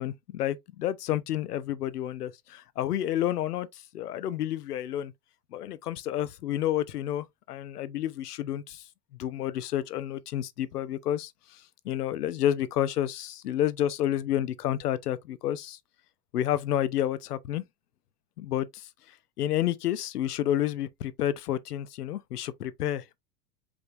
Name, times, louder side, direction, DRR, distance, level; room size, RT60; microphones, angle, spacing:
voice 1, 0.0-5.1 5.5-8.9 9.2-15.8 16.3-17.6 18.4-18.9 19.4-23.2, left 11 dB, 80° left, 0.7 m, -30 dB
5.1 x 3.2 x 2.5 m
hypercardioid pair, 100°, 47 cm